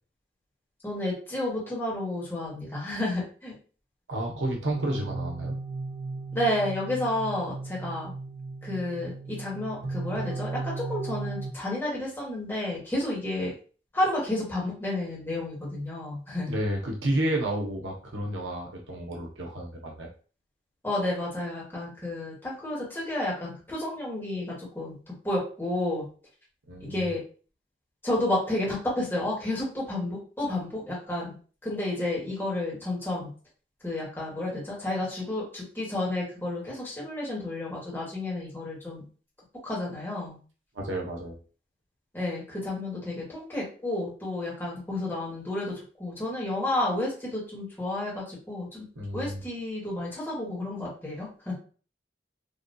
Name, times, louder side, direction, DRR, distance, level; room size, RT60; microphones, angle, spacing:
voice 1, 0.8-3.5 6.3-8.1 8.6-13.5 13.9-16.6 20.8-24.9 25.2-26.1 26.8-27.2 28.0-31.3 31.6-33.3 33.8-39.0 39.6-40.4 42.1-45.7 46.0-48.8 49.1-51.5, left 1 dB, 10° left, -5 dB, 1.2 m, -31 dB
voice 2, 4.1-5.5 16.5-20.1 26.7-27.1 40.7-41.4 49.0-49.4, right 1 dB, 85° right, 0 dB, 0.8 m, -31 dB
sound 1, 4.7-11.5, right 3 dB, 55° right, 0.5 m, -35 dB
3.4 x 2.3 x 2.6 m, 0.39 s
head